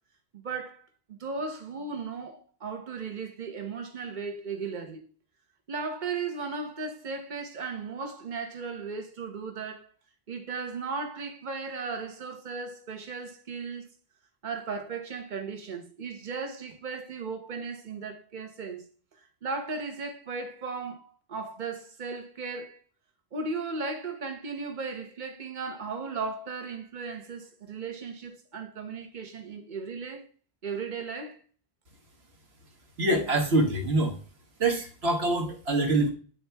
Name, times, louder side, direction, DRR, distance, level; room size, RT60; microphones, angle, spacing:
voice 1, 0.3-5.0 5.7-9.9 10.3-13.8 14.4-18.9 19.4-22.8 23.3-30.3 30.6-31.4, right 4 dB, 45° right, 1.2 m, -36 dB
voice 2, 33.0-34.1 34.6-36.1, right 2 dB, 75° right, 1.7 m, -25 dB
9.2 x 4.4 x 3.4 m
omnidirectional pair, 1.1 m